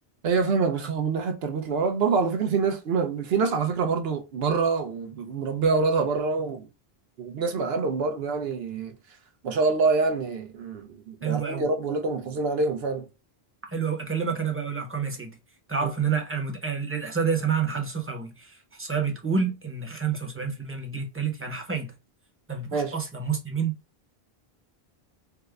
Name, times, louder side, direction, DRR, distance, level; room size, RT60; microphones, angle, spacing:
voice 1, 0.2-6.7 7.2-8.9 9.4-13.1 15.8-15.9 22.7-22.9, right 4 dB, 75° right, 0.8 m, -26 dB
voice 2, 11.2-11.7 13.7-15.4 15.7-21.9 22.5-23.7, right 6 dB, 15° right, 0.6 m, -29 dB
4.7 x 2.1 x 2.3 m
omnidirectional pair, 1.0 m